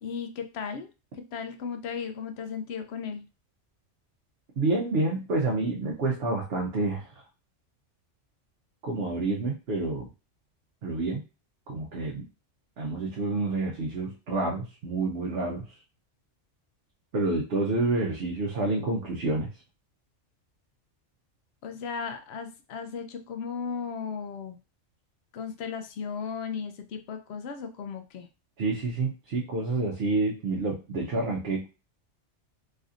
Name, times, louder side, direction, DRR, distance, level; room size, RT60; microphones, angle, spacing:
voice 1, 0.0-0.9 1.2-3.2 21.6-24.6 25.3-28.3, left 6 dB, 65° left, 7 dB, 0.7 m, -36 dB
voice 2, 4.6-7.2 8.8-10.1 10.8-11.2 11.7-12.2 12.8-15.7 17.1-19.5 28.6-31.6, right 2 dB, 60° right, -2 dB, 0.9 m, -28 dB
3.2 x 2.7 x 2.4 m, 0.30 s
omnidirectional pair, 1.3 m